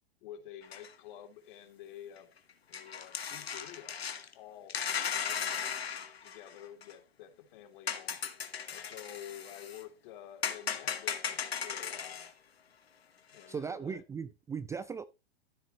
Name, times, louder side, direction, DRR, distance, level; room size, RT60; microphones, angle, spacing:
voice 1, 0.2-2.3 2.7-4.0 4.3-4.8 5.2-5.9 6.2-8.2 8.7-12.3 13.3-14.0, left 10 dB, 55° left, 3.0 m, -50 dB
sound 1, 0.6-0.9 2.2-2.3 2.7-4.3 4.7-6.9 7.9-9.8 10.4-12.3 13.3-13.4, left 7 dB, 90° left, 1.6 m, -37 dB
voice 2, 13.5-15.0, right 6 dB, 10° right, 0.4 m, -38 dB
13.5 x 7.8 x 3.0 m
hypercardioid pair, 110°, 30 cm